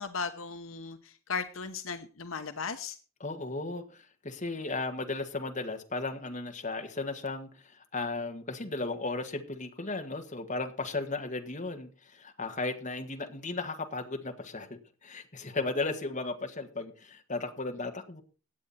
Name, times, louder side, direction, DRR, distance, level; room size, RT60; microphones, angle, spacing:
voice 1, 0.0-3.0, left 5 dB, 70° left, 8 dB, 1.0 m, -36 dB
voice 2, 3.2-18.2, left 3 dB, 35° left, 5 dB, 1.7 m, -35 dB
16.5 x 8.9 x 4.2 m, 0.37 s
head